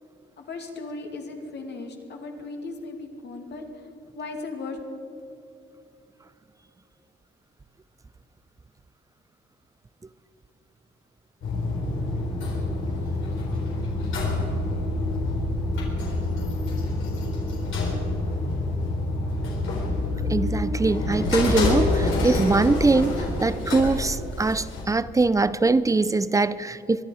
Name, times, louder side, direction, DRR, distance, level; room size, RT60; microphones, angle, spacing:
voice 1, 0.4-3.9 4.1-4.8, left 3 dB, 60° left, 2.4 m, -37 dB
sound 1, 11.4-24.8, left 2 dB, 80° left, 4.2 m, -27 dB
voice 2, 20.3-27.0, right 3 dB, 15° right, 0.5 m, -22 dB
23.5 x 11.0 x 4.9 m
cardioid pair, 90°, 20 cm